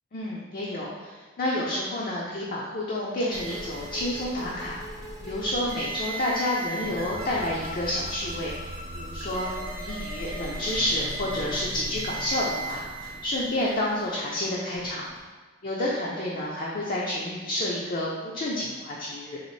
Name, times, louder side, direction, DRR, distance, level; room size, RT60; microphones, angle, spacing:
voice 1, 0.1-4.8 5.2-12.8 13.2-15.1 15.6-19.4, left 1 dB, 45° left, -5 dB, 0.4 m, -29 dB
sound 1, 3.3-15.2, right 2 dB, 15° right, 0.6 m, -37 dB
3.9 x 2.4 x 3.1 m, 1.4 s
head